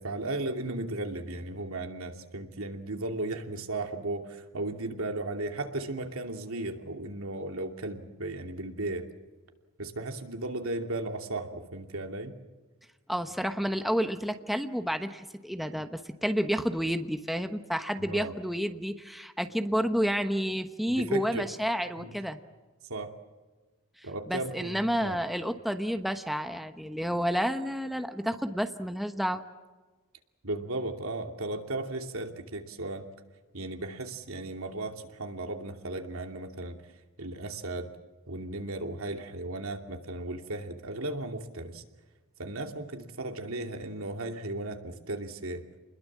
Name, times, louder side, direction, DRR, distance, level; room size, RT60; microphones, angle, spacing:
voice 1, 0.0-9.1 9.8-12.4 18.0-18.4 20.9-21.5 22.0-22.1 22.9-23.1 24.0-25.2 30.4-33.1 33.5-36.8 37.2-37.9 38.3-41.8 42.4-45.6, right 2 dB, 80° right, 4 dB, 2.7 m, -35 dB
voice 2, 13.1-22.4 24.0-29.4, equal, ahead, 7 dB, 1.0 m, -30 dB
29.0 x 21.0 x 7.4 m, 1.2 s
head